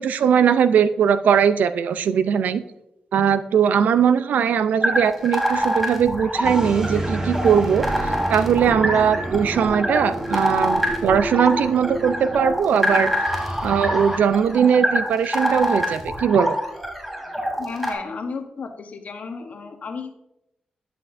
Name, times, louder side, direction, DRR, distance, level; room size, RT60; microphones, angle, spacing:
voice 1, 0.0-2.6 3.1-13.1 13.6-16.6, right 7 dB, 85° right, 13 dB, 0.4 m, -20 dB
sound 1, 4.8-17.9, equal, ahead, 2.8 m, -25 dB
sound 2, 6.4-14.2, right 1 dB, 25° right, 1.4 m, -30 dB
voice 2, 17.6-20.2, left 4 dB, 65° left, 5 dB, 1.1 m, -33 dB
10.5 x 5.9 x 2.6 m, 0.83 s
cardioid pair, 65°, 3 cm